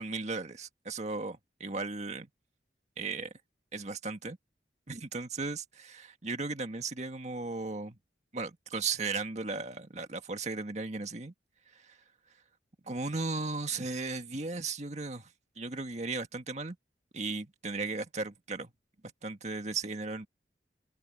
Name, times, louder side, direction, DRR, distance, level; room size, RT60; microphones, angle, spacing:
voice 1, 0.0-2.3 3.0-3.3 3.7-4.4 4.9-8.0 8.3-11.3 11.7-12.0 12.8-15.3 15.6-16.8 17.1-18.7 19.2-20.3, right 3 dB, 40° right, 1.8 m, -36 dB
open air
head